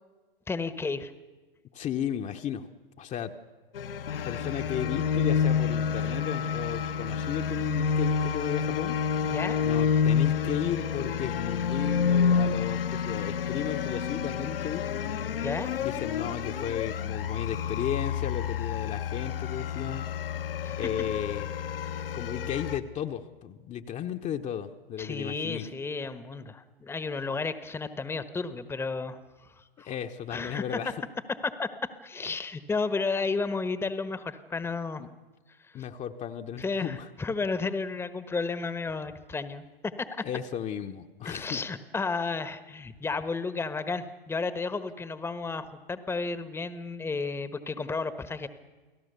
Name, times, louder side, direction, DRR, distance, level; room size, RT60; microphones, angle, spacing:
voice 1, 0.5-1.1 9.2-9.6 15.4-15.7 20.6-20.8 25.0-29.9 30.3-30.8 31.4-35.0 35.7-35.8 36.6-40.3 41.2-48.5, left 4 dB, 10° left, 12 dB, 1.2 m, -32 dB
voice 2, 1.7-2.7 3.0-3.3 4.2-9.0 9.6-15.0 15.8-20.1 20.7-21.5 22.1-25.6 29.8-30.9 35.0-35.1 35.7-37.1 40.2-41.6, left 9 dB, 25° left, 5 dB, 1.1 m, -34 dB
sound 1, 3.7-22.8, left 7 dB, 70° left, 1.5 m, -29 dB
29.5 x 18.0 x 6.9 m, 1.3 s
figure-of-eight pair, 105°, 29 cm